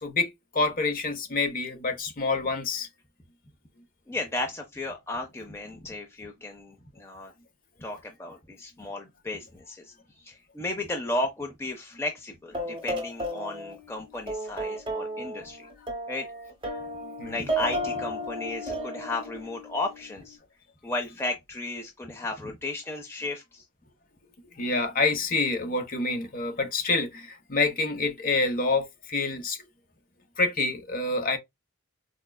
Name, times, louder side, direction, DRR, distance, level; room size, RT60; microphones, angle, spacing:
voice 1, 0.0-2.9 17.0-17.5 24.5-29.6 30.4-31.4, left 3 dB, 40° left, 0.8 m, -27 dB
voice 2, 4.1-7.3 7.8-15.7 16.1-16.3 17.3-20.4 20.8-23.6, left 2 dB, 10° left, 0.5 m, -34 dB
sound 1, 12.5-13.9 14.3-20.3, right 1 dB, 20° right, 1.1 m, -33 dB
4.4 x 2.4 x 2.2 m
head